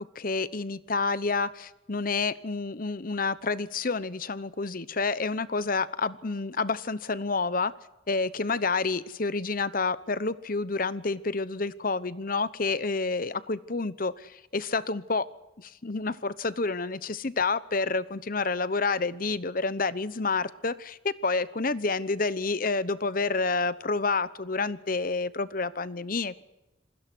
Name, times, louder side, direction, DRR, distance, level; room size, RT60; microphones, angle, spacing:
voice 1, 0.1-7.7 8.1-15.3 15.6-26.4, left 3 dB, 45° left, 16 dB, 0.9 m, -29 dB
27.0 x 20.5 x 6.2 m, 0.98 s
head